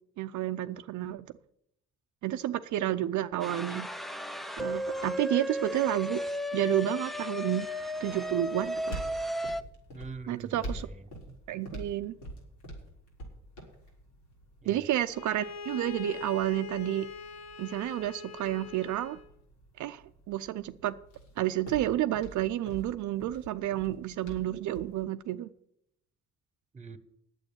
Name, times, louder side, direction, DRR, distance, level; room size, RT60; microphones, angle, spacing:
voice 1, 0.2-1.3 2.2-3.9 4.6-6.2 6.5-7.7 8.0-9.0 10.3-10.9 11.5-12.2 14.7-17.1 17.6-19.2 19.8-20.9 21.4-25.5, right 13 dB, 75° right, 0.6 m, -30 dB
sound 1, 3.4-9.6, equal, ahead, 0.6 m, -34 dB
sound 2, 8.0-25.0, right 1 dB, 90° left, 4.4 m, -47 dB
voice 2, 9.9-11.4 14.6-14.8 26.7-27.0, right 4 dB, 25° right, 1.2 m, -45 dB
Bowed string instrument, 15.1-19.3, left 5 dB, 60° left, 1.2 m, -42 dB
9.0 x 7.8 x 8.7 m
cardioid pair, 90°, 30 cm